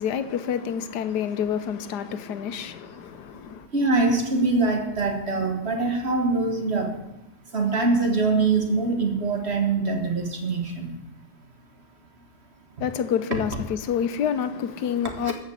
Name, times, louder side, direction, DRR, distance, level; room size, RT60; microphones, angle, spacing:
voice 1, 0.0-3.7 12.8-15.3, left 8 dB, 80° left, 1.4 m, -28 dB
voice 2, 3.7-7.0 7.5-10.9 15.2-15.3, right 3 dB, 40° right, 1.8 m, -23 dB
14.0 x 5.1 x 8.1 m
omnidirectional pair, 1.7 m